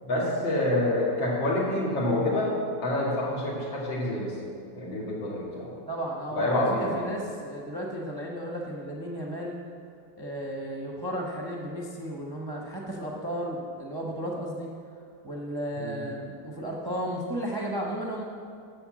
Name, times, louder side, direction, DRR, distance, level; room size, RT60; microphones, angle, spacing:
voice 1, 0.0-2.5 2.8-4.3 4.7-5.7 6.3-7.0 15.7-16.0, left 1 dB, 80° left, -5 dB, 3.1 m, -27 dB
voice 2, 5.9-9.6 10.2-14.7 15.2-18.2, equal, 20° right, -2 dB, 0.5 m, -34 dB
8.7 x 7.0 x 7.4 m, 2.4 s
omnidirectional pair, 2.1 m